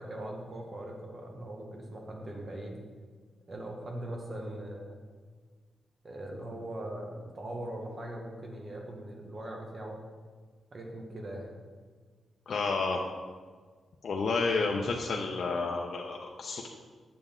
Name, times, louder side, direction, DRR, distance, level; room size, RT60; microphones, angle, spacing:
voice 1, 0.0-2.8 3.5-5.0 6.0-10.0 10.7-11.6, right 1 dB, 40° right, 0 dB, 1.4 m, -40 dB
voice 2, 12.5-13.0 14.0-16.7, left 4 dB, 60° left, -1 dB, 0.7 m, -30 dB
7.5 x 6.9 x 3.8 m, 1.5 s
cardioid pair, 100°, 0 cm